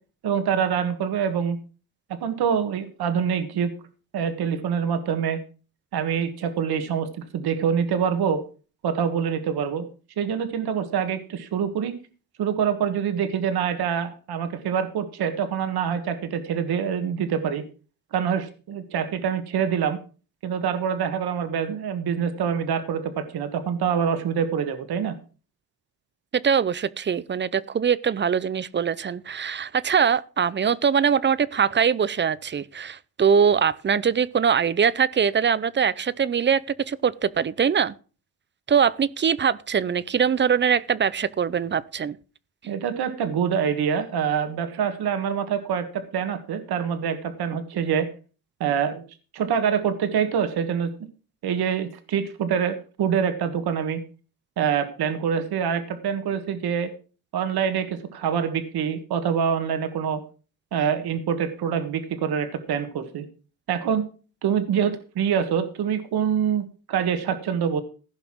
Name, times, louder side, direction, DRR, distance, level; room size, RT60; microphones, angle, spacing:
voice 1, 0.2-1.6 2.1-3.7 4.1-5.4 5.9-8.4 8.8-9.9 10.2-11.9 12.4-17.6 18.1-20.0 20.4-25.1 42.7-48.1 48.6-49.0 49.3-50.9 51.4-54.0 54.6-56.9 57.3-60.2 60.7-63.2 63.7-64.0 64.4-67.8, right 7 dB, 70° right, 1.7 m, -25 dB
voice 2, 26.3-37.9 38.7-42.2, right 7 dB, 30° right, 0.6 m, -22 dB
16.0 x 5.8 x 6.1 m
cardioid pair, 110°, 40 cm